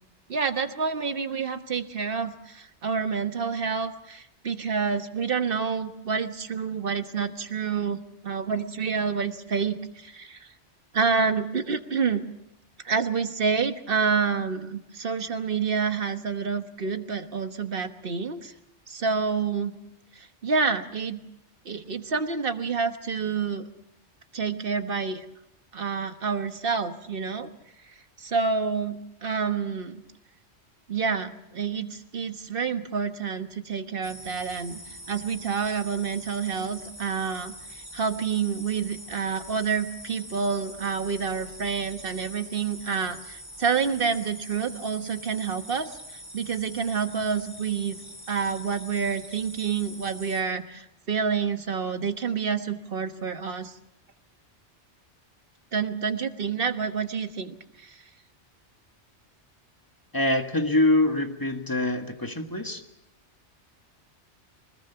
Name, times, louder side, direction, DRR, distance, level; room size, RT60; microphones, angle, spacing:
voice 1, 0.3-10.5 10.9-12.3 12.8-18.5 18.9-19.8 20.1-21.2 21.6-23.7 24.3-25.2 25.7-27.5 28.2-30.0 30.9-34.8 35.1-48.0 48.3-53.7 55.7-58.0, right 5 dB, 50° right, 8 dB, 1.5 m, -28 dB
sound 1, 34.0-50.4, equal, 25° right, 3.7 m, -44 dB
voice 2, 60.1-62.8, left 1 dB, 15° left, 5 dB, 1.7 m, -24 dB
24.0 x 20.5 x 6.8 m, 0.86 s
omnidirectional pair, 1.2 m